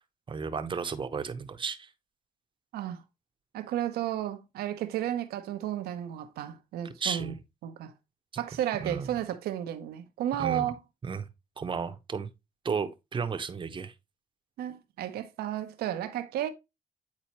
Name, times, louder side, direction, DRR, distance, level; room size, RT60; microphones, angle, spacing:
voice 1, 0.3-1.9 7.0-7.4 8.8-9.1 10.4-10.7 11.0-11.3 11.6-12.3 12.6-13.9, right 5 dB, 30° right, 0.8 m, -33 dB
voice 2, 2.7-3.0 3.5-7.3 7.6-7.9 8.4-10.8 14.6-16.5, right 11 dB, 85° right, 0.8 m, -33 dB
8.6 x 4.1 x 3.0 m
cardioid pair, 85°, 16 cm